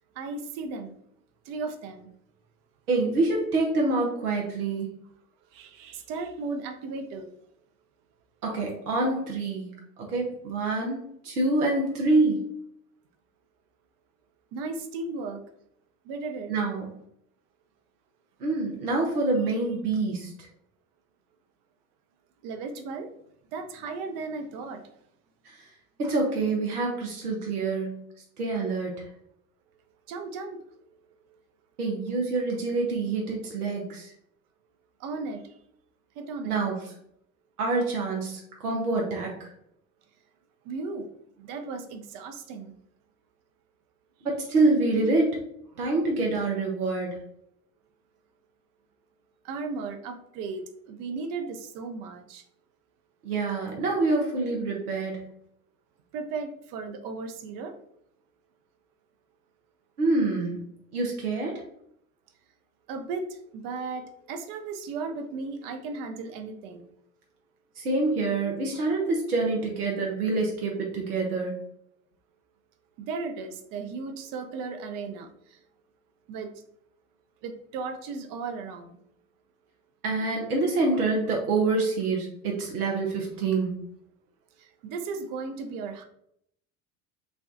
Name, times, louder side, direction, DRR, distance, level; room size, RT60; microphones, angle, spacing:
voice 1, 0.1-0.9 1.4-2.1 5.5-7.3 14.5-15.4 16.0-16.5 22.4-23.1 23.5-25.0 30.1-31.0 31.3-31.4 35.0-35.5 36.2-36.6 40.6-41.1 41.4-42.7 49.4-52.4 56.1-57.8 62.9-67.0 73.0-75.6 76.3-76.5 77.4-79.0 84.6-86.1, right 4 dB, 45° right, 6 dB, 0.7 m, -36 dB
voice 2, 2.9-4.9 8.4-12.4 16.5-16.9 18.4-20.3 25.4-25.6 26.0-28.0 28.4-29.1 31.8-34.1 36.4-36.8 37.6-39.5 44.2-45.4 45.8-47.2 53.2-55.3 60.0-60.6 60.9-61.6 67.8-71.6 80.0-83.8, right 3 dB, 80° right, -1 dB, 0.9 m, -26 dB
5.9 x 2.3 x 2.5 m, 0.72 s
figure-of-eight pair, 70°, 44 cm